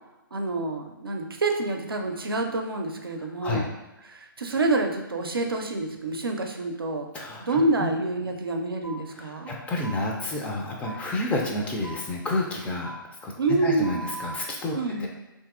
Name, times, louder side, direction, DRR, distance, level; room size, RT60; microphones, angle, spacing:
voice 1, 0.3-3.7 4.1-7.1 7.4-9.5 13.4-14.1 14.7-15.1, right 2 dB, 85° right, 3 dB, 0.5 m, -27 dB
voice 2, 3.4-3.7 7.1-7.9 9.1-12.9 13.2-13.3 13.6-15.1, left 2 dB, 10° left, -1 dB, 0.3 m, -30 dB
sound 1, 8.8-9.0 9.8-10.0 10.8-11.0 11.8-12.0 12.8-13.0 13.8-14.4, right 3 dB, 90° left, 0.7 m, -38 dB
2.8 x 2.6 x 2.4 m, 1.0 s
figure-of-eight pair, 130°, 12 cm